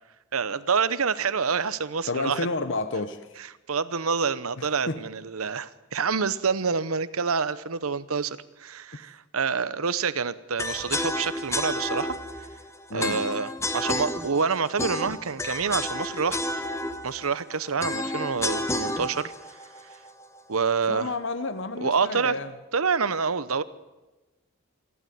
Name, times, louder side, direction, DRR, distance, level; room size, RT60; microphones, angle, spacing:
voice 1, 0.3-2.4 3.7-12.2 12.9-16.4 17.0-19.3 20.5-21.1 21.8-22.3 22.7-23.6, right 5 dB, 85° right, 16 dB, 0.9 m, -27 dB
voice 2, 2.1-3.3 4.6-5.0 12.9-13.2 20.9-22.5, left 3 dB, 60° left, 11 dB, 0.9 m, -30 dB
sound 1, 10.6-20.7, left 1 dB, 15° left, 1.1 m, -31 dB
27.5 x 12.0 x 9.4 m, 1.1 s
head